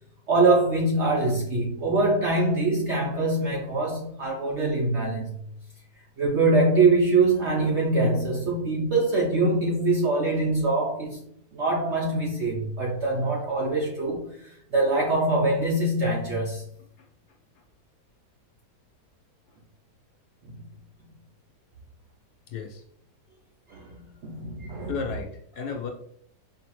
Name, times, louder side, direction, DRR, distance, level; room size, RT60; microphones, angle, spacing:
voice 1, 0.3-5.4 6.2-11.2 11.5-16.6 20.4-20.6 23.7-24.9 25.6-25.7, right 2 dB, 65° right, -2 dB, 0.7 m, -24 dB
voice 2, 22.5-22.8 24.9-25.9, left 6 dB, 70° left, 3 dB, 1.2 m, -33 dB
4.8 x 2.9 x 3.0 m, 0.68 s
omnidirectional pair, 1.9 m